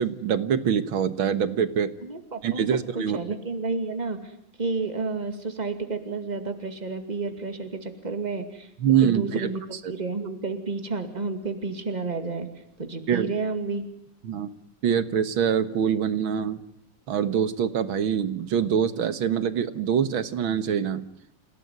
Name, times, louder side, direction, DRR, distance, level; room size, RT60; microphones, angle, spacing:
voice 1, 0.0-1.9 2.4-3.2 8.8-9.5 13.1-13.3 14.2-14.5 14.8-16.6 17.1-21.0, right 8 dB, 70° right, 13 dB, 2.1 m, -24 dB
voice 2, 2.0-4.3 4.6-8.7 9.0-12.5 12.8-13.8, right 4 dB, 20° right, 7 dB, 2.4 m, -31 dB
28.5 x 17.0 x 9.5 m, 0.77 s
omnidirectional pair, 2.3 m